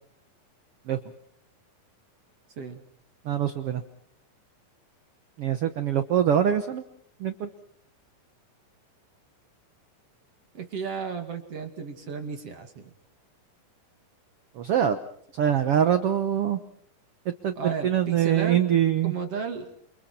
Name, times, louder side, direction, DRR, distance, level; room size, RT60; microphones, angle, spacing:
voice 1, 3.2-3.8 5.4-6.8 7.2-7.5 14.5-15.0 15.3-16.6 17.2-19.1, right 9 dB, 65° right, 9 dB, 1.5 m, -24 dB
voice 2, 10.5-12.9 17.6-18.6 19.0-19.7, right 6 dB, 50° right, 6 dB, 2.9 m, -33 dB
29.5 x 28.0 x 4.3 m, 0.64 s
omnidirectional pair, 3.9 m